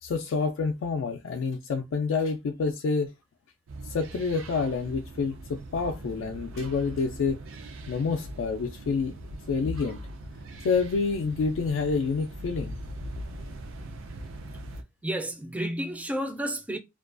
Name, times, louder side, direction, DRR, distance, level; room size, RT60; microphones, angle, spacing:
voice 1, 0.0-3.1 3.8-7.4 7.9-9.2 9.5-10.0 10.6-12.7, left 4 dB, 75° left, 0.3 m, -28 dB
sound 1, 3.7-14.8, right 1 dB, 90° right, 0.4 m, -41 dB
voice 2, 15.0-16.8, right 1 dB, 5° right, 0.3 m, -31 dB
2.3 x 2.2 x 2.4 m
head